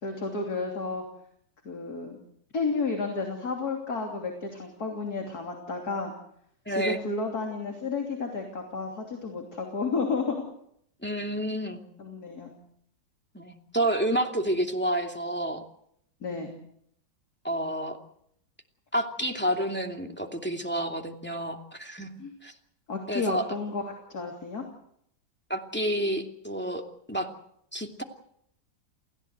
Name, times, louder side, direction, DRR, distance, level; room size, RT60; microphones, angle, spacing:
voice 1, 0.0-1.0 1.7-2.2 2.5-6.1 6.7-10.4 12.0-12.5 16.2-16.5 22.2-22.3 22.9-24.6, left 4 dB, 50° left, 2 dB, 3.5 m, -32 dB
voice 2, 6.7-7.0 11.0-11.8 13.3-15.6 17.4-18.0 18.9-22.1 22.4-22.5 23.1-23.5 25.5-26.8 27.1-27.3 27.7-28.0, right 1 dB, 5° left, 3 dB, 2.5 m, -29 dB
29.5 x 16.0 x 8.1 m, 0.73 s
omnidirectional pair, 2.1 m